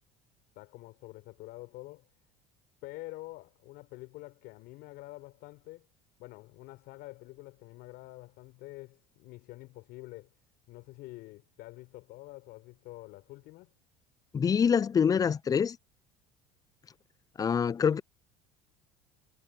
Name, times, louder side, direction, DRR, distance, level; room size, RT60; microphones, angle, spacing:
voice 1, 0.6-2.1 2.8-5.9 6.2-10.3 10.7-13.7, left 20 dB, 65° left, 5.7 m, -47 dB
voice 2, 14.3-15.8 17.4-18.0, left 7 dB, 20° left, 0.4 m, -25 dB
hypercardioid pair, 85°, 17 cm